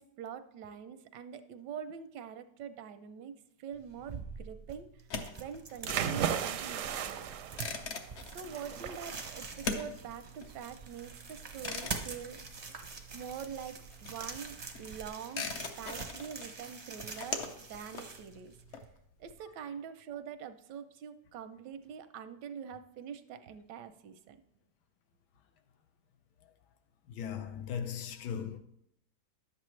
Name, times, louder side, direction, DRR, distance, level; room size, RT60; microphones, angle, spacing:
voice 1, 0.0-3.3 3.6-5.0 5.4-7.3 8.3-12.6 13.1-15.5 15.8-18.5 19.2-24.4, right 7 dB, 85° right, 1.3 m, -45 dB
sound 1, 3.7-18.9, right 4 dB, 40° right, 0.5 m, -46 dB
sound 2, 4.9-13.3 13.5-19.3, left 4 dB, 55° left, 0.9 m, -42 dB
sound 3, 5.8-15.1, right 9 dB, 70° right, 0.8 m, -39 dB
voice 2, 27.1-28.6, left 8 dB, 75° left, 1.3 m, -38 dB
11.0 x 7.5 x 3.2 m
omnidirectional pair, 1.8 m